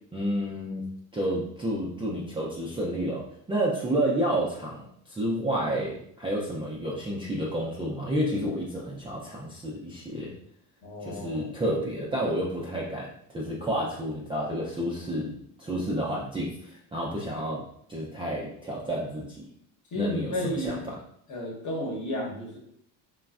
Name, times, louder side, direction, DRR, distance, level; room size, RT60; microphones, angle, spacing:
voice 1, 0.1-0.9 1.1-10.3 11.0-19.4 19.9-20.9, right 1 dB, 10° right, -5 dB, 0.4 m, -30 dB
voice 2, 10.8-11.5 19.9-20.8 21.3-22.6, left 1 dB, 40° left, -1 dB, 1.1 m, -32 dB
3.1 x 2.3 x 2.4 m, 0.68 s
supercardioid pair, 80°, 45 cm